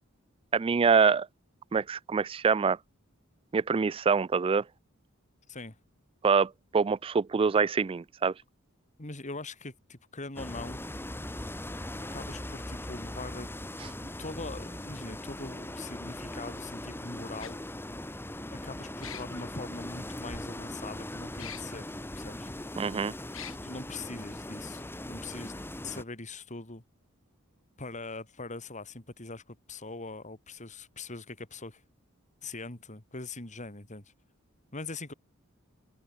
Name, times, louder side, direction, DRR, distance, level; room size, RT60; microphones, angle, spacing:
voice 1, 0.5-1.3 1.7-2.8 3.5-4.6 6.2-8.3 22.8-23.1, right 5 dB, 25° right, 0.3 m, -25 dB
voice 2, 9.0-10.8 12.0-13.5 14.0-17.6 18.5-22.5 23.6-25.5 25.8-26.8 27.8-31.8 32.4-34.1 34.7-35.1, left 3 dB, 35° left, 3.0 m, -42 dB
sound 1, 10.4-26.0, left 1 dB, 10° left, 1.5 m, -40 dB
sound 2, 17.4-17.5 19.0-19.4 21.4-21.6 22.2-22.3 23.3-23.6, left 10 dB, 70° left, 5.0 m, -42 dB
open air
head